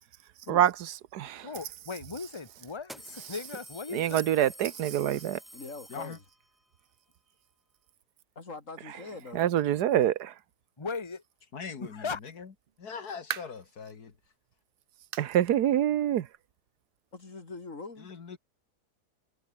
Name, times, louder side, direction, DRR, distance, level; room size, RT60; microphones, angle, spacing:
voice 1, 0.5-1.5 3.9-5.4 9.3-10.3 15.2-16.3, right 11 dB, 80° right, 1.4 m, -26 dB
voice 2, 1.3-4.2 10.8-11.2 11.8-12.2, left 4 dB, 20° left, 1.5 m, -38 dB
sound 1, 1.7-1.8 2.8-6.6, equal, ahead, 0.7 m, -49 dB
voice 3, 5.5-6.2 8.3-9.4 17.1-18.1, left 3 dB, 50° left, 3.5 m, -43 dB
voice 4, 11.5-12.5 12.8-14.2 18.0-18.4, left 5 dB, 70° left, 2.5 m, -41 dB
sound 2, 12.7-13.7 14.2-14.3 15.1-15.4 15.7-15.8 16.3-16.4 17.5-17.6, right 7 dB, 45° right, 0.8 m, -39 dB
omnidirectional pair, 1.7 m